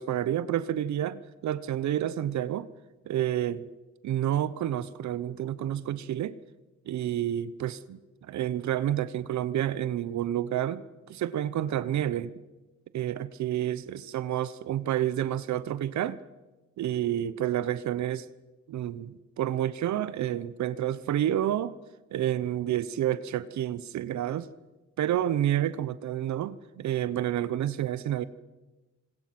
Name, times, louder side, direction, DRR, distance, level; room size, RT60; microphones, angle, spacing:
voice 1, 0.0-2.7 3.1-3.7 4.0-6.4 6.9-10.8 11.1-12.3 12.9-16.2 16.8-18.3 18.7-21.8 22.1-24.5 25.0-28.2, right 11 dB, 70° right, 16 dB, 0.9 m, -29 dB
26.0 x 20.5 x 6.0 m, 1.1 s
cardioid pair, 90°, 30 cm